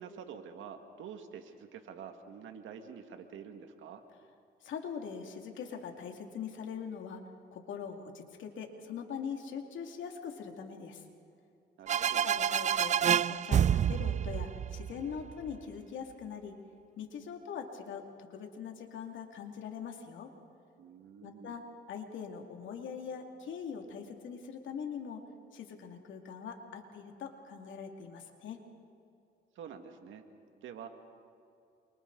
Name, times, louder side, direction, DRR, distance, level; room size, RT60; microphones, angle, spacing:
voice 1, 0.0-4.0 11.8-12.3 20.8-21.6 29.6-30.2 30.6-30.9, right 7 dB, 80° right, 6 dB, 2.0 m, -47 dB
voice 2, 4.6-7.2 7.5-11.0 12.2-12.9 13.3-16.5 17.0-20.3 21.2-25.2 25.5-28.6, left 7 dB, 75° left, 3 dB, 2.5 m, -42 dB
sound 1, 11.9-15.5, right 9 dB, 35° right, 0.4 m, -28 dB
28.5 x 24.5 x 4.0 m, 2.5 s
cardioid pair, 90°, 20 cm